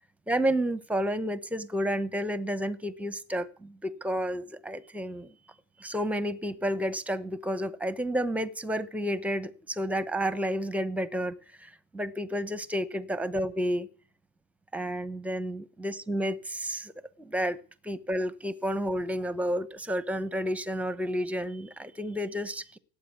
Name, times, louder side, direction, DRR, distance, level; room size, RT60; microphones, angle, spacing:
voice 1, 0.3-5.3 5.8-13.9 14.7-16.9 17.2-17.6 17.8-22.8, equal, 5° right, 14 dB, 0.8 m, -31 dB
17.5 x 8.5 x 9.3 m, 0.41 s
cardioid pair, 165°, 32 cm